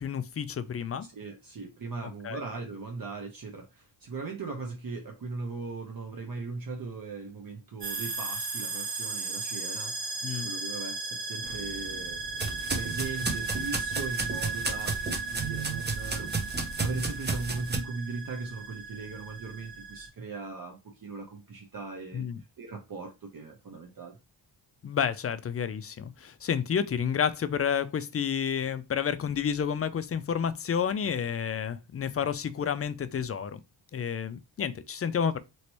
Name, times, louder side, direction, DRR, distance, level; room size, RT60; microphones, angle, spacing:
voice 1, 0.0-1.1 2.0-2.4 10.2-10.5 22.1-22.4 24.8-33.6 33.9-35.4, left 7 dB, 35° left, 0.4 m, -30 dB
voice 2, 1.1-10.2 10.4-12.2 12.7-16.5 16.8-22.2 22.6-24.2, right 3 dB, 45° right, 0.9 m, -38 dB
sound 1, 7.8-20.1, right 4 dB, 90° right, 1.5 m, -36 dB
sound 2, 11.4-17.8, right 3 dB, 20° right, 0.8 m, -33 dB
3.0 x 2.9 x 3.0 m
cardioid pair, 65°, 47 cm